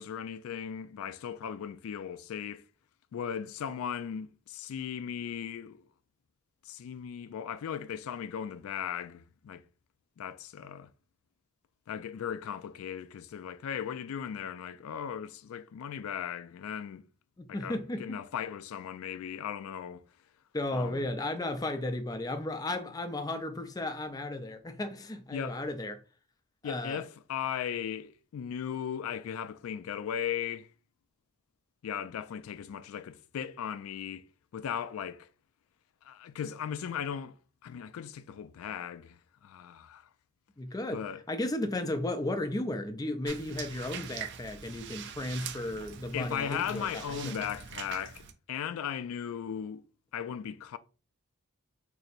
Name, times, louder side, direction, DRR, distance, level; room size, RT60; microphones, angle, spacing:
voice 1, 0.0-2.6 3.1-5.8 6.6-9.6 10.2-10.9 11.9-17.0 17.5-20.0 20.7-21.1 25.3-25.6 26.6-30.7 31.8-34.2 34.5-35.3 36.0-37.3 37.6-40.1 40.9-41.2 46.1-49.8 50.1-50.8, left 8 dB, 90° left, 0.3 m, -37 dB
voice 2, 17.4-18.2 20.5-26.0 26.6-27.0 40.6-41.0 41.3-47.5, left 1 dB, 20° left, 0.4 m, -34 dB
sound 1, 43.3-48.3, right 8 dB, 55° right, 0.4 m, -43 dB
4.1 x 2.7 x 2.5 m
head